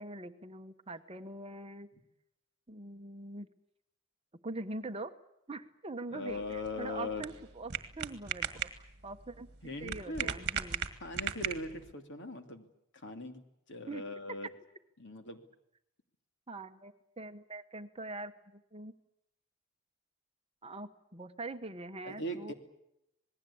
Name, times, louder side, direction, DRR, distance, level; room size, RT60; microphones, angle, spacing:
voice 1, 0.0-1.9 2.7-3.5 4.4-5.1 5.5-9.5 9.8-10.8 13.9-14.0 16.5-18.9 20.6-22.5, right 2 dB, 25° right, 8 dB, 1.1 m, -43 dB
voice 2, 6.1-7.3 9.6-10.4 11.0-12.6 12.9-14.5 15.0-15.4 22.0-22.5, left 2 dB, 50° left, 6 dB, 2.7 m, -40 dB
sound 1, 6.3-11.9, right 8 dB, 50° right, 1.8 m, -38 dB
27.0 x 20.0 x 8.7 m, 0.82 s
head